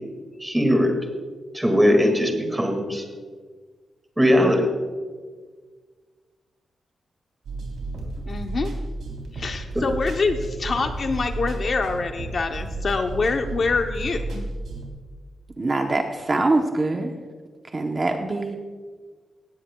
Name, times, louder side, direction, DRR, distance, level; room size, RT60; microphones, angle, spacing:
voice 1, 0.4-0.9 1.5-3.0 4.2-4.7, equal, 10° right, 3 dB, 1.9 m, -19 dB
sound 1, 7.4-14.9, right 2 dB, 80° right, 3.3 m, -32 dB
voice 2, 8.3-8.7 9.3-14.5, left 4 dB, 40° left, 5 dB, 0.7 m, -25 dB
voice 3, 15.6-17.1 17.7-18.6, right 2 dB, 25° right, 3 dB, 0.8 m, -23 dB
18.0 x 16.0 x 2.3 m, 1.5 s
wide cardioid pair, 175°, 0 cm